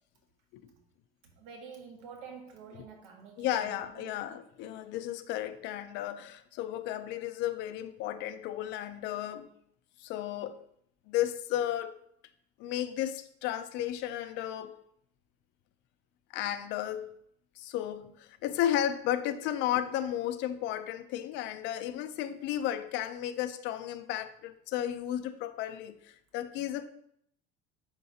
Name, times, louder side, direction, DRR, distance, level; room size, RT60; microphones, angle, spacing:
voice 1, 1.4-4.4, right 5 dB, 85° right, 1.6 m, -48 dB
voice 2, 3.4-9.5 10.0-10.6 11.1-12.0 12.6-14.8 16.3-17.1 17.6-26.9, left 11 dB, 60° left, 0.5 m, -33 dB
10.5 x 3.8 x 2.8 m
cardioid pair, 160°, 21 cm